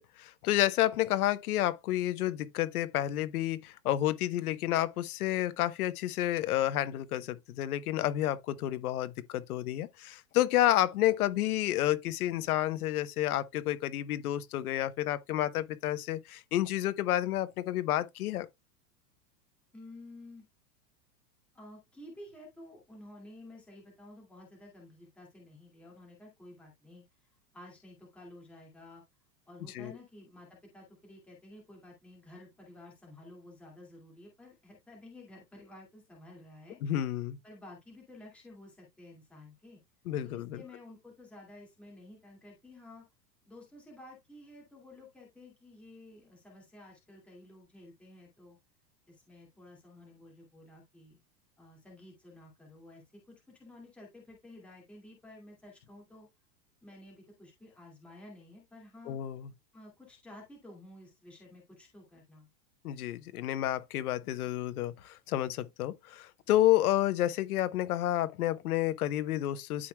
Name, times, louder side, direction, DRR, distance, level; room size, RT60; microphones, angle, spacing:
voice 1, 0.0-18.5 29.7-29.9 36.8-37.4 40.1-40.6 59.1-59.5 62.8-69.9, left 13 dB, 60° left, 1.0 m, -30 dB
voice 2, 19.7-20.4 21.5-27.0 27.5-29.0 29.5-36.8 37.4-39.8 40.2-43.0 43.5-48.6 49.1-51.2 51.6-56.3 56.8-59.2 59.7-62.5, left 1 dB, ahead, 2.2 m, -52 dB
12.5 x 4.6 x 2.3 m
supercardioid pair, 180°, 49 cm